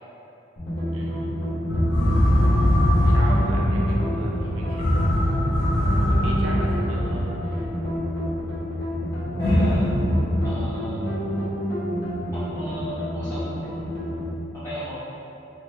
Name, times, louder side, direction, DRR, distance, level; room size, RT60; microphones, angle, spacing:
sound 1, 0.6-14.3, equal, 55° left, 1.0 m, -29 dB
voice 1, 0.9-1.4 3.0-4.9 6.0-7.7, right 1 dB, 85° right, -3 dB, 0.5 m, -36 dB
sound 2, 1.7-8.2 9.4-10.5, equal, 75° left, 0.6 m, -21 dB
voice 2, 9.1-9.8 10.4-11.2 12.3-13.7 14.5-14.9, left 1 dB, 15° left, -14 dB, 0.5 m, -35 dB
2.9 x 2.2 x 3.1 m, 2.9 s
head